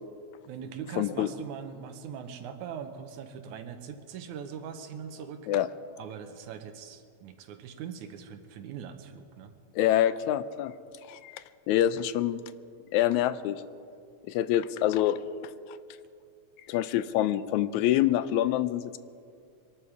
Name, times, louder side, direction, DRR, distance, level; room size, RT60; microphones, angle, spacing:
voice 1, 0.5-5.5 6.0-9.5, right 7 dB, 85° right, 8 dB, 2.4 m, -41 dB
voice 2, 1.0-1.3 5.5-5.7 9.8-10.7 11.1-12.4 12.9-13.6 14.3-15.2 16.7-19.0, left 12 dB, 80° left, 14 dB, 1.9 m, -26 dB
23.5 x 12.5 x 4.8 m, 2.3 s
omnidirectional pair, 3.4 m